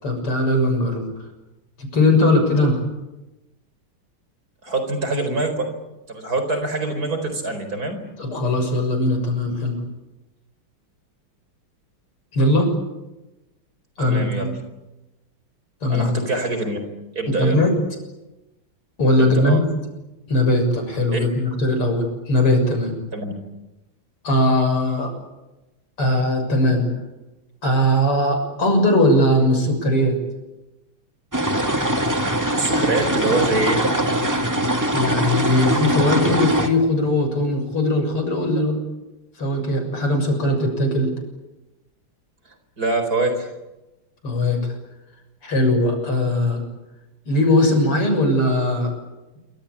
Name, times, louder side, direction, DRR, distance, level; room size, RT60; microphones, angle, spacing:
voice 1, 0.0-1.1 1.8-2.8 8.2-9.8 12.3-12.7 14.0-14.5 15.8-16.1 17.4-17.7 19.0-19.7 20.3-22.9 24.2-25.1 26.0-26.9 27.6-30.2 34.9-38.8 39.4-41.1 44.2-44.6 45.4-46.6 47.3-49.0, left 1 dB, 85° left, 5 dB, 7.7 m, -19 dB
voice 2, 4.6-5.7 6.1-8.0 14.0-14.5 15.9-16.8 17.1-17.6 19.2-19.6 21.1-21.2 23.1-23.3 32.6-33.8 42.8-43.5, right 2 dB, 40° right, 7 dB, 5.0 m, -24 dB
sound 1, 31.3-36.7, right 1 dB, 10° right, 1.9 m, -21 dB
27.5 x 25.0 x 8.5 m, 1.0 s
omnidirectional pair, 2.4 m